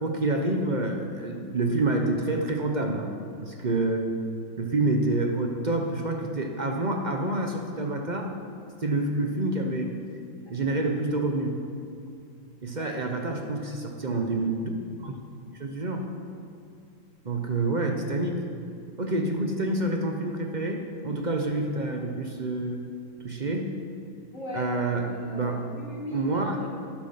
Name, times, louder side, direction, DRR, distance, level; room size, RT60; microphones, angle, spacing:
voice 1, 0.0-3.1 3.4-4.1 4.6-8.3 8.8-10.0 10.5-11.6 12.6-14.7 15.0-15.2 15.6-16.0 17.2-18.4 19.0-22.9 23.2-23.7 24.5-25.6 26.1-26.6, right 2 dB, 45° right, 3 dB, 0.6 m, -27 dB
voice 2, 12.8-13.5 24.3-26.7, equal, 40° left, -4 dB, 2.7 m, -39 dB
12.0 x 11.0 x 5.7 m, 2.6 s
omnidirectional pair, 2.1 m